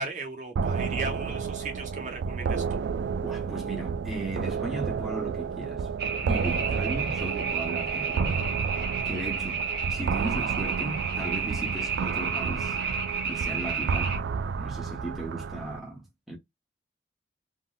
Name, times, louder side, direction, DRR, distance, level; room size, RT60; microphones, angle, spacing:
voice 1, 0.0-2.6, right 3 dB, 40° right, 0.8 m, -36 dB
sound 1, 0.6-15.8, right 5 dB, 85° right, 0.3 m, -31 dB
voice 2, 3.2-5.9 6.3-8.5 9.0-12.8 13.2-14.3 14.6-16.4, right 2 dB, ahead, 0.9 m, -36 dB
sound 2, 6.0-14.2, right 5 dB, 65° right, 1.5 m, -32 dB
3.7 x 2.1 x 2.2 m
head